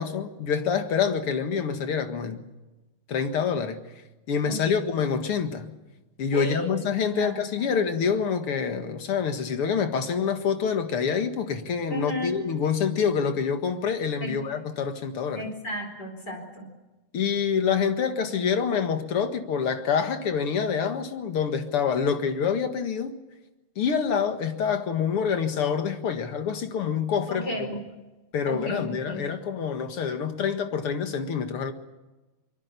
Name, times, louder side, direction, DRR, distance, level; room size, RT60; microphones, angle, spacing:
voice 1, 0.0-2.5 3.1-3.9 4.3-5.7 6.2-15.4 17.1-23.2 23.8-27.5 28.3-31.7, left 6 dB, 80° left, 2.7 m, -26 dB
voice 2, 4.4-4.9 6.3-6.8 7.1-7.8 11.9-12.4 14.2-14.3 15.3-16.7 27.3-27.8 28.5-29.3, equal, 45° left, 4.9 m, -34 dB
24.5 x 22.5 x 6.9 m
omnidirectional pair, 2.4 m